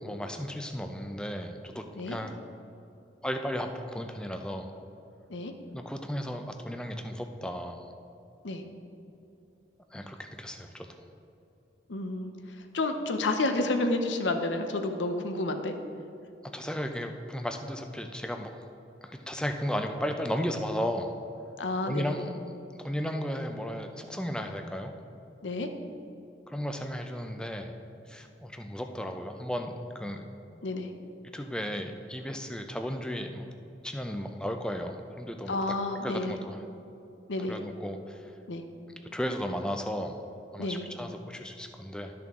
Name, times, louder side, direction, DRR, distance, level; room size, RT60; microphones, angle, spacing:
voice 1, 0.0-2.3 3.2-4.7 5.7-7.9 9.9-10.9 16.5-18.5 19.0-21.1 21.9-22.4 22.7-24.9 26.5-27.7 28.1-30.2 31.3-33.4 33.8-35.6 36.0-36.6 37.5-38.3 39.1-40.1 40.5-42.1, equal, 5° left, 5 dB, 0.4 m, -34 dB
voice 2, 11.9-12.3 12.7-15.7 21.6-22.3 25.4-25.7 30.6-30.9 35.5-36.4 37.3-37.6 38.5-38.6 40.6-40.8, left 2 dB, 90° left, 6 dB, 0.7 m, -30 dB
12.0 x 5.9 x 3.6 m, 2.9 s
head